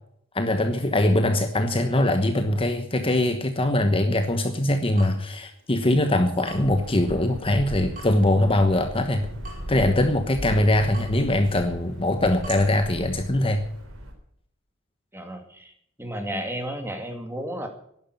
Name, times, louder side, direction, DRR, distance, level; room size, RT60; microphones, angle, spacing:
voice 1, 0.3-9.3 9.7-13.6, left 1 dB, 25° left, 7 dB, 1.2 m, -22 dB
Water tap faucet / Drip, 4.6-13.8, right 3 dB, 40° right, 5.6 m, -49 dB
sound 1, 6.5-14.1, equal, 90° right, 3.8 m, -38 dB
voice 2, 15.1-15.7 16.0-17.7, equal, 10° right, 5 dB, 2.4 m, -32 dB
11.5 x 11.0 x 9.3 m, 0.70 s
head